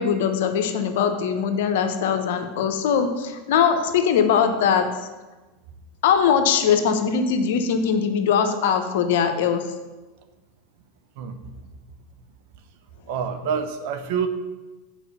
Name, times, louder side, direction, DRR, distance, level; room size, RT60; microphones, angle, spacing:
voice 1, 0.0-5.0 6.0-9.7, left 7 dB, 70° left, 7 dB, 0.9 m, -21 dB
voice 2, 11.2-11.5 13.1-14.3, right 7 dB, 65° right, 8 dB, 0.8 m, -27 dB
6.2 x 5.0 x 6.7 m, 1.2 s
hypercardioid pair, 100°, 0 cm